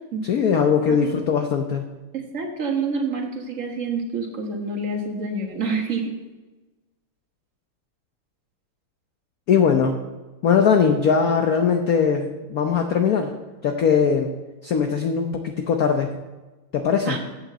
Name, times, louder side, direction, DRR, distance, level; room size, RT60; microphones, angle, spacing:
voice 1, 0.2-1.9 9.5-10.0 10.4-13.3 13.6-14.3 14.6-16.1 16.7-17.2, left 6 dB, 60° left, 4 dB, 0.9 m, -20 dB
voice 2, 0.9-1.2 2.1-6.1 17.1-17.2, right 4 dB, 40° right, 2 dB, 1.6 m, -27 dB
8.7 x 7.1 x 6.7 m, 1.2 s
omnidirectional pair, 2.4 m